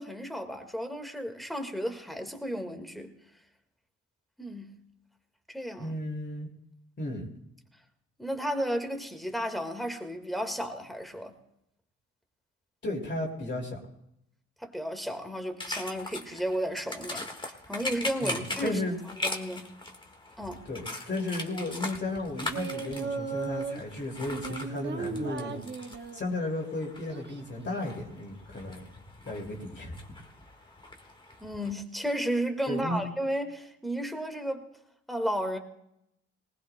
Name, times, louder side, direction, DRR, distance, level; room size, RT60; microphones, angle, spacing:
voice 1, 0.0-3.1 4.4-4.7 5.5-6.0 8.2-11.3 14.6-17.3 17.7-18.8 19.2-19.7 20.4-20.6 31.4-34.6 35.1-35.6, equal, ahead, 1.7 m, -33 dB
voice 2, 5.8-6.5 7.0-7.3 12.8-13.8 18.2-19.0 20.7-25.7 26.1-28.9 29.2-29.9 32.7-33.0, left 1 dB, 35° left, 2.5 m, -34 dB
sound 1, 15.6-31.7, left 2 dB, 15° left, 1.6 m, -40 dB
Singing, 22.4-23.8 24.3-26.3 27.1-27.6, right 5 dB, 35° right, 1.0 m, -36 dB
19.5 x 19.0 x 2.2 m
cardioid pair, 90°, 30 cm